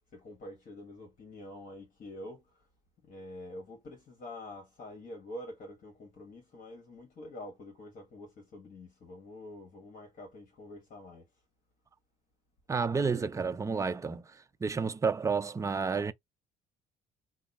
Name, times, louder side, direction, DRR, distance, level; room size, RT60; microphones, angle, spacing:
voice 1, 0.1-2.6 3.0-11.3, left 1 dB, 50° left, 1.6 m, -46 dB
voice 2, 12.7-14.2 14.6-16.1, right 5 dB, 20° right, 0.5 m, -30 dB
2.9 x 2.4 x 4.1 m
cardioid pair, 110°, 17 cm